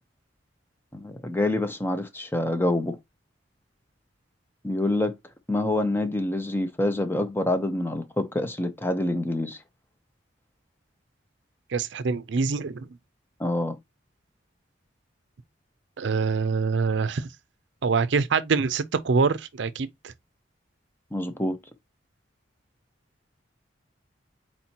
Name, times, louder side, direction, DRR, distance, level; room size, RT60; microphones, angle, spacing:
voice 1, 0.9-3.0 4.6-5.1 5.5-9.6 13.4-13.8 21.1-21.6, left 1 dB, 10° left, 0.6 m, -26 dB
voice 2, 11.7-12.9 16.0-17.3 17.8-20.1, right 5 dB, 70° right, 0.5 m, -25 dB
4.3 x 4.2 x 2.8 m
head